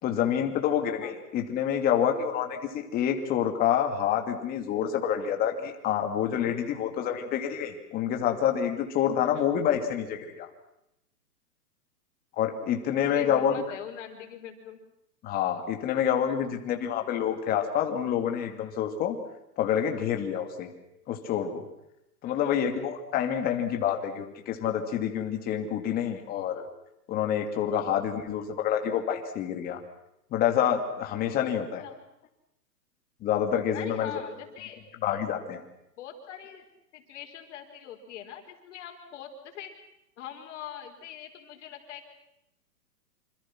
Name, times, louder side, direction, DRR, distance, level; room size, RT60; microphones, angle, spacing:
voice 1, 0.0-10.5 12.4-13.6 15.2-19.2 19.6-20.7 21.1-21.6 22.2-26.7 27.1-29.8 30.3-31.8 33.2-34.1 35.0-35.6, left 9 dB, 20° left, 4 dB, 2.7 m, -27 dB
voice 2, 13.0-14.8 22.2-22.6 27.7-27.9 31.8-32.0 33.7-34.8 36.0-36.6 36.9-39.7 40.2-42.1, left 9 dB, 45° left, 4 dB, 4.5 m, -42 dB
27.0 x 26.5 x 6.1 m, 0.84 s
hypercardioid pair, 160°, 49 cm